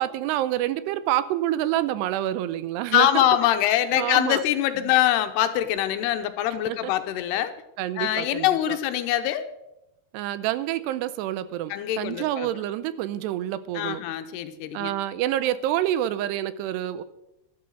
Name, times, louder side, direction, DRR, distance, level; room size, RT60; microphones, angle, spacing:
voice 1, 0.0-3.2 3.9-4.4 6.7-6.9 7.8-8.8 10.1-14.0 14.7-17.0, right 13 dB, 80° right, 14 dB, 2.8 m, -27 dB
voice 2, 2.9-7.5 8.0-9.5 11.7-12.5 13.7-14.9, left 12 dB, 80° left, 9 dB, 2.8 m, -23 dB
12.5 x 12.5 x 6.4 m, 0.89 s
omnidirectional pair, 4.9 m